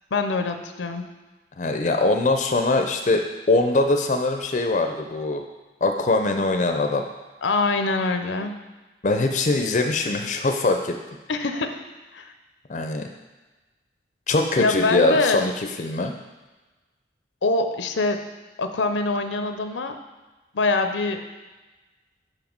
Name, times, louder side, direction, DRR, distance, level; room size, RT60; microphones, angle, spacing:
voice 1, 0.1-1.0 7.4-8.5 11.3-11.9 12.1-12.3 14.6-15.5 17.4-18.3 18.6-20.0 20.5-21.2, left 3 dB, 85° left, 7 dB, 0.6 m, -24 dB
voice 2, 1.6-5.4 5.8-7.0 9.0-11.0 12.7-13.1 14.3-15.5 15.8-16.1, left 2 dB, 40° left, 4 dB, 0.4 m, -22 dB
5.6 x 4.9 x 5.2 m, 1.2 s
head